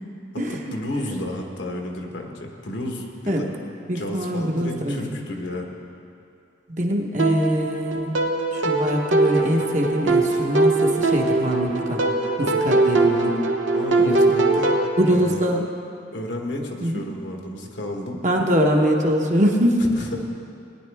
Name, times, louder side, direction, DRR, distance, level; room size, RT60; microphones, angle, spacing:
voice 1, 0.5-3.5 3.9-5.8 13.7-14.8 15.1-15.5 16.1-18.2 19.8-20.2, left 1 dB, 65° left, 1 dB, 1.4 m, -32 dB
voice 2, 3.9-5.1 6.7-8.2 8.5-12.0 12.4-13.4 14.0-14.2 15.0-15.6 16.8-17.0 18.2-19.8, equal, 40° right, 0 dB, 1.1 m, -23 dB
sound 1, 7.2-14.9, right 2 dB, 85° right, 1.0 m, -21 dB
18.0 x 10.5 x 3.5 m, 2.5 s
head